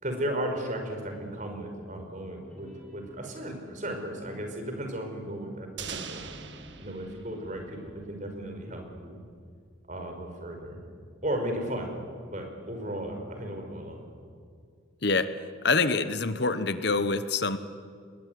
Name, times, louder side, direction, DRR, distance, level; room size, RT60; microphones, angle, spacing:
voice 1, 0.0-6.2 6.8-9.2 9.9-10.8 11.2-11.9 12.2-14.1, right 1 dB, 40° right, 4 dB, 5.2 m, -35 dB
sound 1, 1.1-1.9 2.3-6.9 7.3-7.9, equal, 5° left, 4.9 m, -52 dB
sound 2, 5.8-8.6, right 6 dB, 60° right, 1.8 m, -42 dB
voice 2, 15.0-15.4 15.6-17.6, left 3 dB, 55° left, 12 dB, 1.1 m, -26 dB
27.5 x 21.5 x 9.4 m, 2.2 s
head